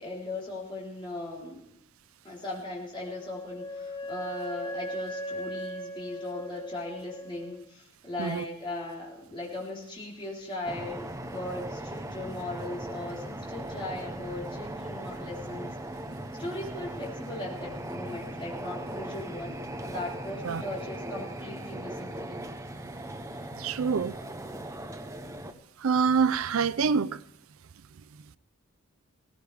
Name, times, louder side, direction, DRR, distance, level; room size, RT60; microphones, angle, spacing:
voice 1, 0.0-1.7 2.2-15.7 16.4-22.4, left 2 dB, 25° left, 3.9 m, -38 dB
Wind instrument woodwind instrument, 2.9-7.6, equal, 70° left, 2.8 m, -38 dB
sound 1, 10.7-25.5, right 1 dB, 15° right, 0.8 m, -39 dB
voice 2, 23.6-24.1 25.8-27.2, right 6 dB, 70° right, 0.5 m, -26 dB
18.0 x 16.0 x 3.4 m
head